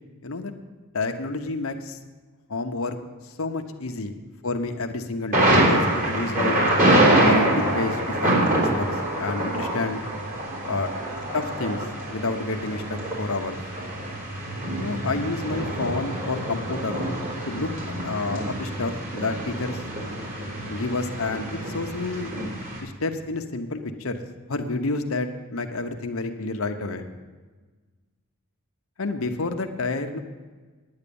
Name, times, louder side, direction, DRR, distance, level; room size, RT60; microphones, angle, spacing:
voice 1, 0.9-2.0 2.5-3.0 3.2-4.2 4.4-6.6 7.2-10.0 10.7-10.9 11.3-11.8 12.1-13.6 14.8-17.1 17.5-19.8 20.7-22.3 22.8-24.2 24.5-27.1 29.0-30.2, left 3 dB, 70° left, 5 dB, 0.9 m, -29 dB
Thunder, 5.3-22.8, right 1 dB, 40° right, 3.6 m, -25 dB
9.7 x 9.6 x 7.0 m, 1.3 s
head